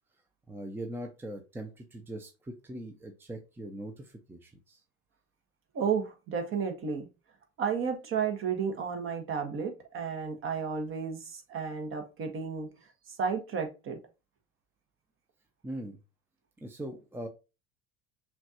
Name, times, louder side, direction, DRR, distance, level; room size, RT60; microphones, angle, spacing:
voice 1, 0.5-4.8 15.6-16.0 16.6-17.3, right 1 dB, 5° right, 0.7 m, -41 dB
voice 2, 5.7-7.1 7.6-12.7 13.2-14.0, right 6 dB, 40° right, 1.3 m, -32 dB
5.9 x 2.5 x 2.8 m
hypercardioid pair, 90°, 32 cm